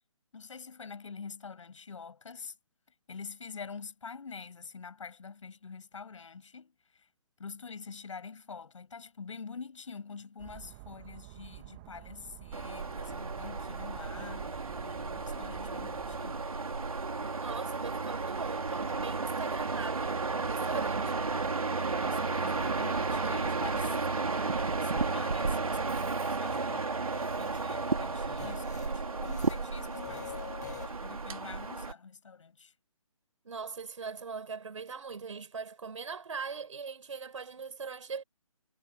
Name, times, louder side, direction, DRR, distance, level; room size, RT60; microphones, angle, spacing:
voice 1, 0.3-2.5 3.1-7.1 7.4-16.4 20.7-21.4 22.0-26.9 27.4-30.4 30.8-32.7, left 5 dB, 65° left, 6.5 m, -46 dB
sound 1, 10.4-16.2, right 21 dB, 20° right, 1.5 m, -50 dB
sound 2, 12.5-31.9, right 4 dB, 90° right, 3.1 m, -33 dB
voice 2, 17.4-21.1 33.4-38.2, right 5 dB, 65° right, 4.7 m, -40 dB
sound 3, 25.8-30.9, left 12 dB, 30° left, 7.6 m, -48 dB
hypercardioid pair, 160°, 18 cm